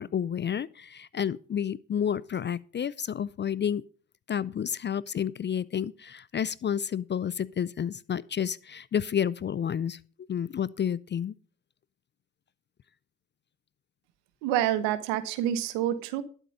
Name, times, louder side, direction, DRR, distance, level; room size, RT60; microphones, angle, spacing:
voice 1, 0.0-3.8 4.3-10.0 10.3-11.3, left 8 dB, 25° left, 0.4 m, -30 dB
voice 2, 14.4-16.2, right 11 dB, 80° right, 1.2 m, -27 dB
12.0 x 7.3 x 5.3 m
hypercardioid pair, 60°, 42 cm